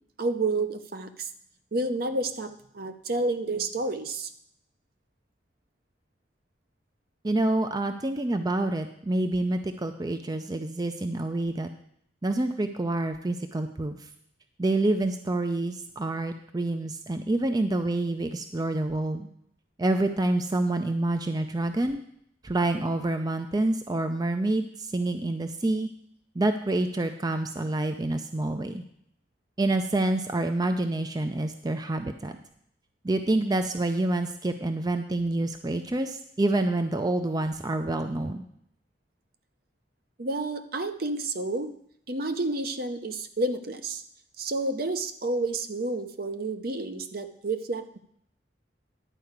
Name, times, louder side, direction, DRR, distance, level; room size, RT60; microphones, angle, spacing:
voice 1, 0.2-1.3 1.7-4.3 40.2-41.7 42.1-44.0 44.4-48.0, right 2 dB, 55° right, 9 dB, 0.8 m, -30 dB
voice 2, 7.2-11.7 12.2-14.0 14.6-19.3 19.8-22.0 22.4-25.9 26.4-28.8 29.6-32.3 33.0-38.4, right 2 dB, 20° right, 7 dB, 0.5 m, -27 dB
11.0 x 4.8 x 8.0 m, 0.69 s
head